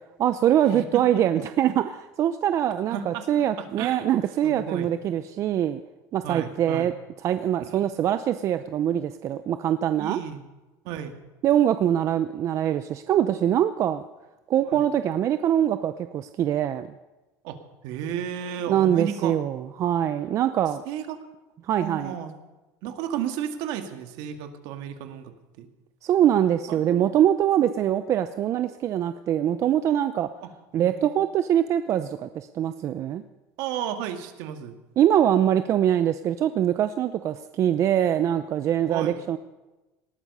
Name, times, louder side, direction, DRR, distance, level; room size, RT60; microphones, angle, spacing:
voice 1, 0.2-5.8 6.1-6.9 7.2-10.2 11.4-14.0 14.5-16.9 18.7-20.8 21.6-22.1 26.0-30.3 30.7-33.2 35.0-39.4, right 10 dB, 40° right, 11 dB, 0.6 m, -23 dB
voice 2, 0.7-1.2 2.9-3.3 3.6-4.1 4.4-4.9 6.2-6.9 7.7-7.8 10.0-10.4 10.8-11.1 14.6-14.8 17.4-19.4 20.9-21.2 21.8-22.3 22.8-25.7 26.7-27.1 30.4-31.2 33.6-34.7 38.9-39.2, right 9 dB, 70° right, 6 dB, 1.9 m, -33 dB
19.0 x 13.5 x 5.5 m, 1.1 s
supercardioid pair, 130°, 8 cm